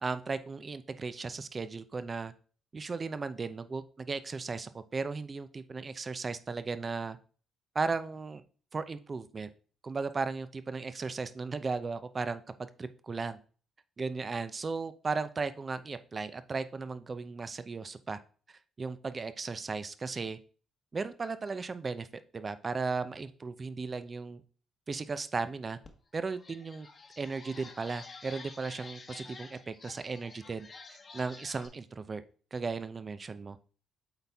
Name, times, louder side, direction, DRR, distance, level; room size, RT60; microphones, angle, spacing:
voice 1, 0.0-2.3 2.7-7.2 7.7-8.4 8.7-9.5 9.8-12.4 12.8-13.4 14.0-18.2 18.5-20.4 20.9-22.1 22.3-24.4 24.9-25.8 26.1-26.9 27.2-32.2 32.5-33.6, right 4 dB, 35° right, 13 dB, 0.6 m, -36 dB
sound 1, 25.8-25.9 26.3-31.7, left 4 dB, 40° left, 1.1 m, -50 dB
8.0 x 4.2 x 3.5 m, 0.40 s
cardioid pair, 90°, 0 cm